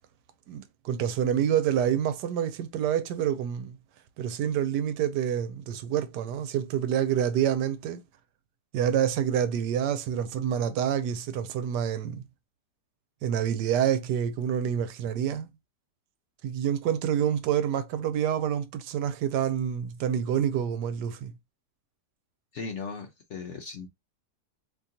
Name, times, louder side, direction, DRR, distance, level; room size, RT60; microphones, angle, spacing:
voice 1, 0.5-3.8 4.2-8.0 8.7-12.2 13.2-15.5 16.4-21.3, right 9 dB, 90° right, 1.2 m, -27 dB
voice 2, 22.5-23.9, left 4 dB, 60° left, 0.8 m, -37 dB
3.7 x 2.9 x 2.7 m
omnidirectional pair, 1.8 m